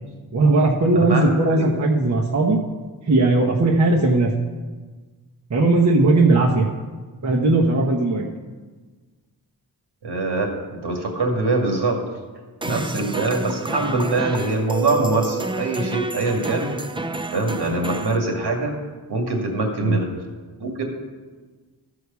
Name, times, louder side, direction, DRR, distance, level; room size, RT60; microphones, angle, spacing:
voice 1, 0.3-2.6 3.0-4.5 5.5-6.7 7.2-8.3 12.7-13.0 19.8-20.0, right 2 dB, 45° right, -1 dB, 1.2 m, -18 dB
voice 2, 0.9-1.7 10.0-12.0 12.6-16.8 17.3-18.8 19.1-20.1 20.6-20.8, right 2 dB, 75° right, 1 dB, 2.2 m, -23 dB
sound 1, 12.6-18.2, right 3 dB, 15° right, 0.5 m, -30 dB
14.0 x 4.8 x 6.9 m, 1.4 s
wide cardioid pair, 100°, 40 cm